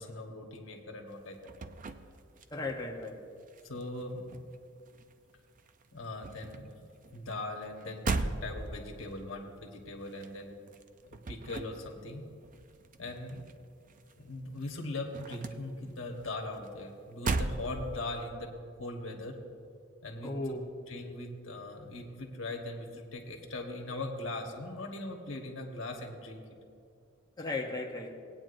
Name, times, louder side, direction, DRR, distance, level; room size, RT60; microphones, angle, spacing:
voice 1, 0.0-1.5 3.6-4.5 5.9-10.6 11.3-12.3 13.0-13.4 14.2-18.5 18.8-19.4 20.0-20.6 20.9-26.4, left 2 dB, 75° left, 1 dB, 1.4 m, -40 dB
sound 1, 1.1-3.1 3.4-5.3 5.6-14.3 14.5-18.3, right 3 dB, 40° right, 0.5 m, -39 dB
voice 2, 2.5-3.2 20.2-20.7 27.4-28.1, left 2 dB, 20° left, -1 dB, 0.9 m, -36 dB
19.0 x 9.0 x 2.6 m, 2.3 s
head